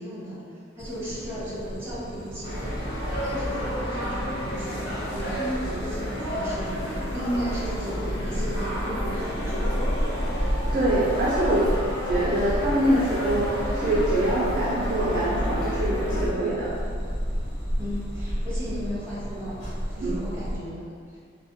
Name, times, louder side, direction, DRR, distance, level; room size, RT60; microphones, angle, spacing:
voice 1, 0.0-2.8 3.2-9.8 17.8-20.9, equal, 10° right, -9 dB, 0.7 m, -35 dB
sound 1, 0.8-20.6, equal, 85° left, 0.9 m, -33 dB
sound 2, 2.4-16.3, equal, 45° left, 0.6 m, -30 dB
voice 2, 10.7-11.7 12.1-16.7 20.0-20.1, right 1 dB, 45° right, -7 dB, 0.3 m, -24 dB
2.4 x 2.1 x 2.5 m, 2.1 s
head